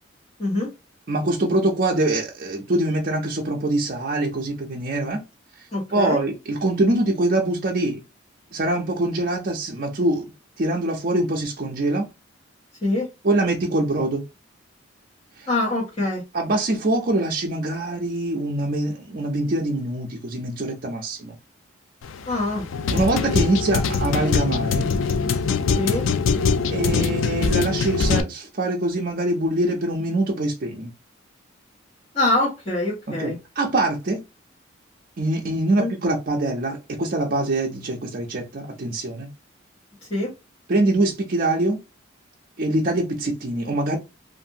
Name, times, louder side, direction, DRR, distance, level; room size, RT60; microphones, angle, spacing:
voice 1, 1.1-5.2 5.9-8.0 8.5-10.3 10.6-12.1 13.2-14.2 15.4-15.5 16.3-21.3 22.9-24.9 26.7-30.9 33.1-34.2 35.2-39.3 40.7-41.8 42.6-44.0, right 2 dB, 45° right, 0.5 m, -24 dB
voice 2, 5.7-6.2 12.8-13.1 15.5-16.2 22.2-22.7 25.8-26.0 32.1-33.4 35.8-35.9 40.1-40.3, left 2 dB, 30° left, 1.2 m, -24 dB
sound 1, 22.0-28.2, left 5 dB, 80° left, 0.4 m, -23 dB
2.6 x 2.6 x 2.6 m
head